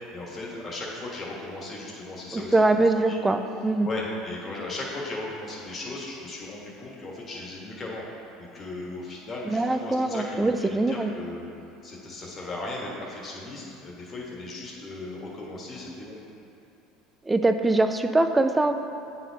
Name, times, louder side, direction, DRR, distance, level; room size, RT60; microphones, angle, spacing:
voice 1, 0.1-2.6 3.1-3.2 3.8-8.1 8.4-11.5 11.8-16.2, left 2 dB, 35° left, -3 dB, 1.4 m, -37 dB
voice 2, 2.3-3.9 9.5-11.1 17.3-18.7, right 2 dB, 15° right, 8 dB, 0.4 m, -23 dB
8.8 x 4.2 x 2.8 m, 2.7 s
hypercardioid pair, 85°, 0 cm